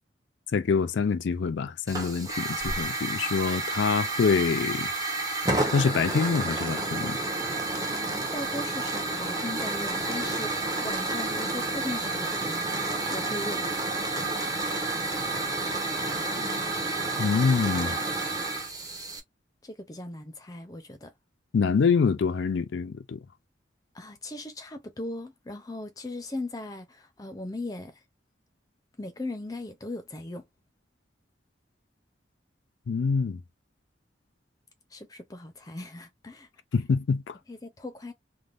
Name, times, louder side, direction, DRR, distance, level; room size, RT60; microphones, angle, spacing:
voice 1, 0.5-4.9 5.7-7.2 17.2-18.0 21.5-23.2 32.9-33.4 36.7-37.3, left 5 dB, 75° left, 0.4 m, -25 dB
Hiss / Fire, 1.9-19.2, right 2 dB, 20° right, 0.7 m, -30 dB
voice 2, 7.9-12.7 13.1-13.7 16.4-16.7 19.6-21.1 23.9-27.9 29.0-30.4 34.9-36.5 37.5-38.1, left 2 dB, 20° left, 0.5 m, -38 dB
3.4 x 2.2 x 2.5 m
head